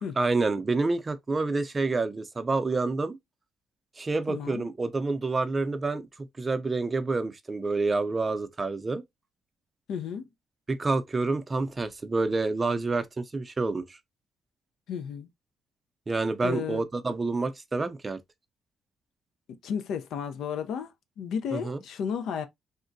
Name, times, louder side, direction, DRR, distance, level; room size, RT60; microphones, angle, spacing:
voice 1, 0.2-3.2 4.0-9.0 10.7-14.0 16.1-18.2 21.5-21.8, right 3 dB, 30° right, 0.5 m, -28 dB
voice 2, 4.3-4.7 9.9-10.3 14.9-15.3 16.4-16.8 19.5-22.5, left 7 dB, 75° left, 0.4 m, -33 dB
3.6 x 2.1 x 2.5 m
cardioid pair, 90°, 0 cm